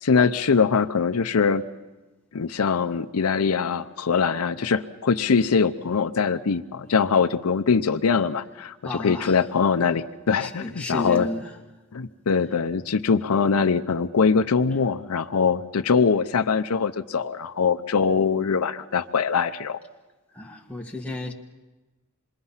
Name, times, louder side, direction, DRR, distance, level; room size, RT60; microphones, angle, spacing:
voice 1, 0.0-1.6 2.3-11.3 11.9-19.8, left 5 dB, 75° left, 0.6 m, -22 dB
voice 2, 8.8-9.5 10.4-11.5 20.3-21.3, left 2 dB, 5° left, 1.5 m, -33 dB
27.0 x 22.0 x 5.6 m
head